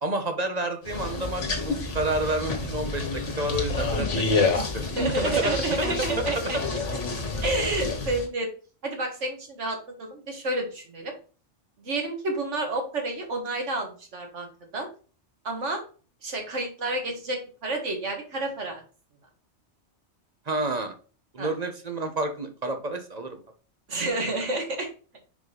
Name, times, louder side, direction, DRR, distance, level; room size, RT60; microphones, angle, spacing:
voice 1, 0.0-5.6 20.5-20.9 21.3-23.4, right 2 dB, 40° right, 6 dB, 0.9 m, -30 dB
sound 1, 0.8-8.3, left 3 dB, 80° left, 1.6 m, -28 dB
voice 2, 5.0-6.8 7.4-8.5 8.8-11.1 11.8-14.5 14.7-14.9 15.4-15.8 16.2-18.8 21.4-21.5 23.9-24.9, right 2 dB, 85° right, 2 dB, 2.0 m, -30 dB
5.1 x 4.9 x 4.0 m, 0.38 s
omnidirectional pair, 1.2 m